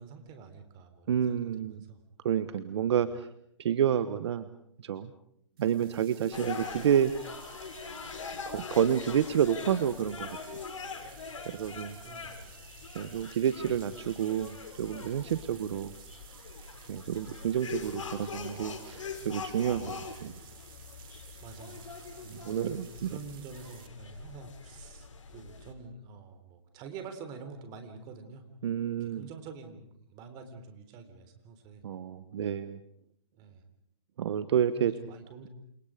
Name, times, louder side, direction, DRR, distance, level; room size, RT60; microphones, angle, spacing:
voice 1, 0.0-2.0 5.8-5.9 12.0-12.5 12.8-13.2 15.5-15.7 19.9-20.1 21.4-21.8 23.1-28.4 29.0-31.8 33.4-33.6 34.8-35.5, right 5 dB, 25° right, 8 dB, 3.7 m, -47 dB
voice 2, 1.1-1.8 2.2-3.3 3.6-4.5 4.8-5.1 5.6-7.1 8.3-10.4 11.4-12.0 12.9-15.9 16.9-20.4 22.3-23.2 28.6-29.3 31.8-32.8 34.2-34.9, right 9 dB, 60° right, 13 dB, 1.2 m, -29 dB
sound 1, 5.6-23.9, right 11 dB, 45° right, 2.8 m, -55 dB
sound 2, 6.3-25.7, left 5 dB, 90° left, 6.0 m, -43 dB
29.0 x 28.0 x 5.1 m, 0.71 s
hypercardioid pair, 155°, 16 cm